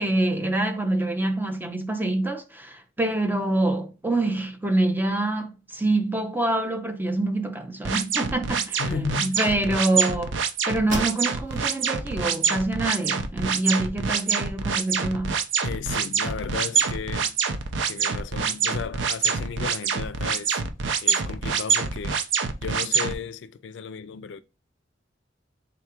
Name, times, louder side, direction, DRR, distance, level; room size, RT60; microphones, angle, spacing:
voice 1, 0.0-10.4 10.7-15.4, right 2 dB, 10° right, 0.6 m, -26 dB
sound 1, 7.8-23.1, right 6 dB, 85° right, 0.5 m, -25 dB
voice 2, 8.8-9.4 15.6-17.4 17.9-20.6 21.0-22.3 22.6-24.4, left 6 dB, 70° left, 0.4 m, -34 dB
sound 2, 10.8-11.7 12.2-12.3 12.8-13.7, right 1 dB, 45° right, 1.1 m, -35 dB
3.9 x 2.3 x 4.4 m
head